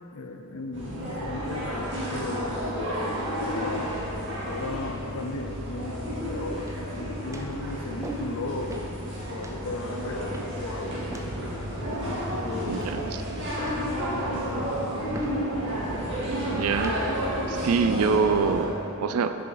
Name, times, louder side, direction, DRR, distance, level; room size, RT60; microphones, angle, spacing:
voice 1, 0.1-2.6 3.4-11.0 12.3-13.0 13.6-14.9 15.2-15.3, left 3 dB, 75° left, 5 dB, 0.5 m, -36 dB
sound 1, 0.7-18.7, equal, 55° right, 1.5 m, -31 dB
sound 2, 6.6-6.9 7.3-7.6 8.0-8.4 8.7-8.9 9.4-9.6 10.3-10.6 11.1-11.4 11.9-12.3 12.8-13.2 13.6-13.9 14.3-14.6 15.1-15.4 15.9-16.2 16.7-17.0 17.6-18.0, right 2 dB, 15° right, 0.4 m, -42 dB
voice 2, 12.7-13.2 16.5-16.9 17.5-19.4, right 5 dB, 85° right, 9 dB, 0.4 m, -25 dB
5.8 x 5.4 x 4.7 m, 2.9 s
head